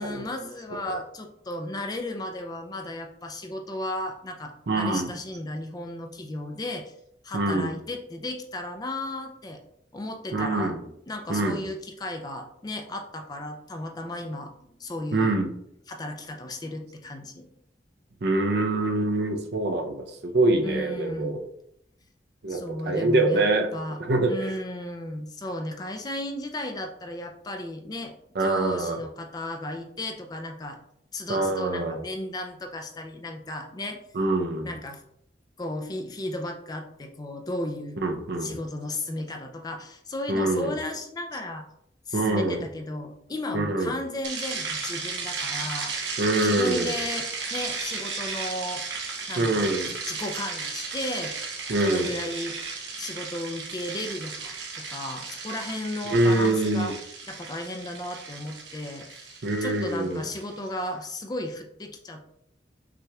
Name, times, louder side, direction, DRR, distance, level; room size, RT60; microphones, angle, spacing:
voice 1, 0.0-6.9 7.2-9.6 9.9-10.7 11.1-15.4 15.9-17.5 20.6-21.3 22.5-23.4 23.7-24.0 24.2-28.1 28.4-30.8 31.1-34.0 34.6-35.0 35.6-38.0 38.4-41.7 42.1-48.8 49.3-49.7 50.0-51.3 51.8-52.6 53.0-56.9 57.3-62.3, left 1 dB, 20° left, 4 dB, 0.4 m, -34 dB
voice 2, 4.7-5.1 7.3-7.8 10.3-10.8 11.3-11.6 15.1-15.5 18.2-21.4 22.4-24.6 28.3-29.0 31.3-32.0 34.1-34.7 38.0-38.6 40.3-40.8 42.1-42.7 43.5-44.0 46.2-46.9 49.4-49.9 51.7-52.1 56.1-56.9 59.4-60.2, right 2 dB, 65° right, 3 dB, 0.6 m, -25 dB
sound 1, 44.2-60.5, right 4 dB, 85° right, 0.9 m, -35 dB
5.9 x 2.9 x 2.3 m, 0.72 s
head